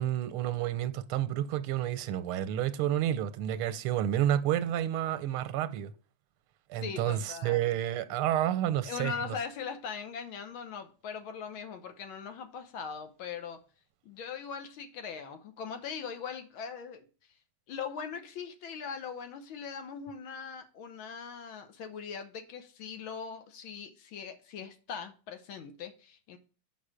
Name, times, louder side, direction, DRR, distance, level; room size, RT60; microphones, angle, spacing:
voice 1, 0.0-5.9 6.7-9.3, right 11 dB, 90° right, 1.5 m, -30 dB
voice 2, 6.8-7.6 8.9-13.6 14.0-17.1 17.7-26.4, left 6 dB, 75° left, 1.7 m, -40 dB
6.1 x 5.6 x 5.0 m
omnidirectional pair, 2.4 m